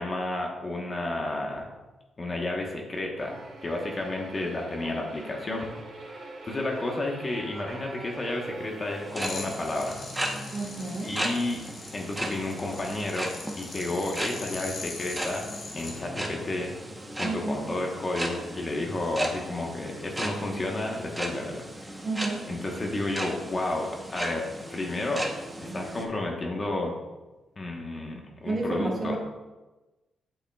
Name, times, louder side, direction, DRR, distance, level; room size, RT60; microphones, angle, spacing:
voice 1, 0.0-1.7 2.2-5.7 6.1-10.0 10.4-10.5 11.0-11.6 11.9-13.3 13.6-16.8 17.2-22.0 22.5-25.3 25.6-27.0 27.6-29.2, left 2 dB, 30° left, 0 dB, 1.1 m, -31 dB
sound 1, 3.2-9.6, right 2 dB, 55° right, 1.7 m, -43 dB
sound 2, 8.9-26.1, right 1 dB, 15° right, 1.0 m, -36 dB
sound 3, 9.2-16.0, left 3 dB, 55° left, 1.3 m, -41 dB
voice 2, 10.5-11.2 17.2-17.6 22.0-22.5 28.4-29.2, right 3 dB, 35° right, -2 dB, 1.9 m, -31 dB
7.8 x 7.2 x 2.3 m, 1.1 s
cardioid pair, 100°, 0 cm